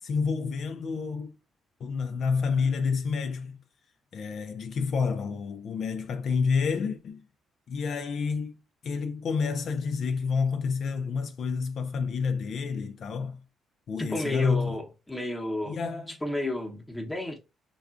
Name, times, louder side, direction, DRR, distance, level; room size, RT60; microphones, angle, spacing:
voice 1, 0.0-1.3 1.8-3.6 4.1-7.2 7.7-8.5 8.8-13.4 13.9-14.7 15.7-16.2, left 5 dB, 60° left, 0.3 m, -29 dB
voice 2, 14.0-15.8 16.2-17.4, left 1 dB, 10° left, 0.8 m, -32 dB
3.6 x 2.3 x 2.3 m
cardioid pair, 90°, 0 cm